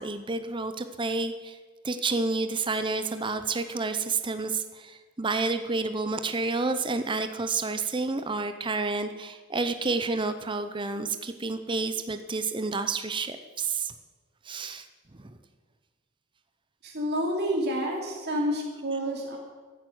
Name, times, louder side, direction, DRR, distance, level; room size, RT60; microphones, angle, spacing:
voice 1, 0.0-1.6 1.8-13.9 14.4-14.9 15.1-15.4, right 3 dB, 20° right, 9 dB, 0.6 m, -30 dB
voice 2, 16.8-19.4, equal, 50° right, -1 dB, 2.7 m, -29 dB
14.5 x 9.1 x 7.9 m, 1.4 s
head